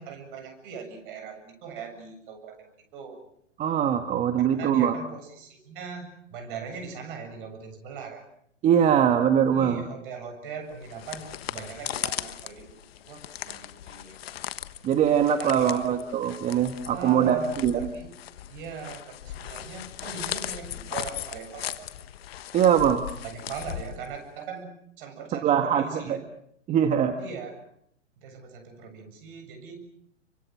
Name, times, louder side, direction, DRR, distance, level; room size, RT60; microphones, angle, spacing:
voice 1, 0.0-2.7 2.9-3.2 4.6-8.2 9.5-14.2 15.4-16.0 16.9-18.1 18.5-21.9 23.2-24.7 25.0-26.2 27.2-27.6 28.2-29.9, right 6 dB, 45° right, 6 dB, 7.5 m, -40 dB
voice 2, 3.6-5.0 8.6-9.8 14.8-17.9 22.5-23.0 25.3-26.2 26.7-27.2, right 9 dB, 20° right, 8 dB, 1.4 m, -22 dB
sound 1, 10.7-24.4, left 12 dB, 55° left, 1.4 m, -38 dB
30.0 x 24.5 x 6.1 m, 0.69 s
hypercardioid pair, 130°, 36 cm